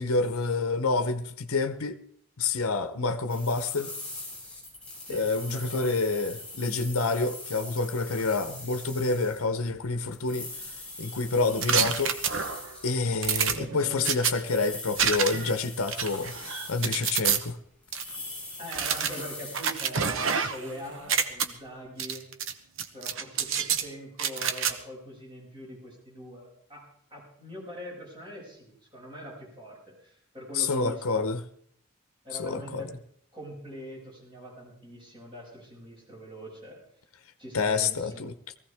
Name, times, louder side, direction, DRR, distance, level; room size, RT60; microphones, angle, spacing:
voice 1, 0.0-2.0 2.4-3.9 5.1-10.5 11.0-12.2 12.8-17.6 30.5-31.4 32.4-32.8 37.5-38.3, left 3 dB, 75° left, 0.9 m, -28 dB
sound 1, 3.3-13.0 13.8-17.5 17.8-21.7, left 2 dB, 5° left, 5.9 m, -42 dB
voice 2, 5.1-5.9 18.6-22.2 22.9-31.2 32.2-32.9 33.3-36.8 37.4-38.2, equal, 20° right, 6.5 m, -43 dB
sound 2, 11.6-12.7 13.2-14.3 15.0-15.5 15.9-17.4 17.9-18.0 18.7-20.7 21.0-21.5 22.0-22.5 22.8-23.8 24.2-24.7, right 7 dB, 65° right, 1.0 m, -28 dB
19.0 x 15.5 x 3.5 m
head